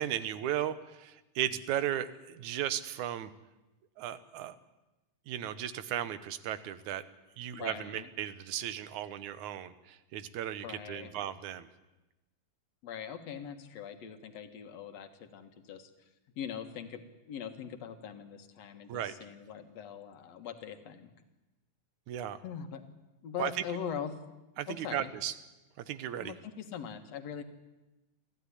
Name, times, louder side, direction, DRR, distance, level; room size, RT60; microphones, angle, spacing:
voice 1, 0.0-3.3 4.0-4.6 5.3-7.0 7.4-11.7 18.9-19.1 22.1-22.4 23.4-23.5 24.6-25.3 25.9-26.3, right 11 dB, 85° right, 14 dB, 2.4 m, -35 dB
voice 2, 7.5-8.1 10.6-11.1 12.8-15.9 16.4-21.1 22.4-22.8 23.2-24.2 24.7-25.1 26.2-27.4, left 8 dB, 65° left, 7 dB, 2.6 m, -42 dB
23.0 x 15.0 x 9.9 m, 1.0 s
omnidirectional pair, 3.3 m